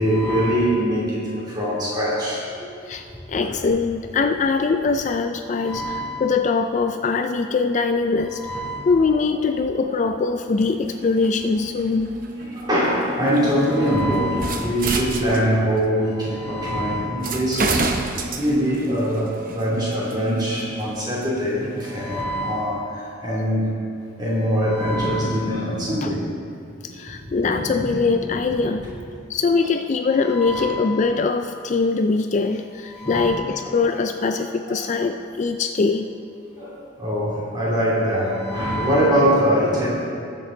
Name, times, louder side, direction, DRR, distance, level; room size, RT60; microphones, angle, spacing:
voice 1, 0.0-2.7 3.4-3.6 5.5-6.2 8.3-8.8 9.2-9.4 12.4-17.9 18.4-23.7 24.2-26.2 26.9-27.0 27.3-28.0 28.5-28.6 28.8-28.9 30.2-30.8 32.9-33.3 33.7-34.0 34.7-34.9 36.5-39.9, equal, 20° right, -7 dB, 2.8 m, -23 dB
voice 2, 2.9-8.4 8.9-12.2 26.0-26.1 26.8-28.9 29.3-36.1, left 4 dB, 35° left, 6 dB, 0.3 m, -22 dB
sound 1, 10.6-15.8 16.6-16.7 17.2-22.2, right 3 dB, 45° right, 0.7 m, -30 dB
19.0 x 6.7 x 3.8 m, 2.4 s
head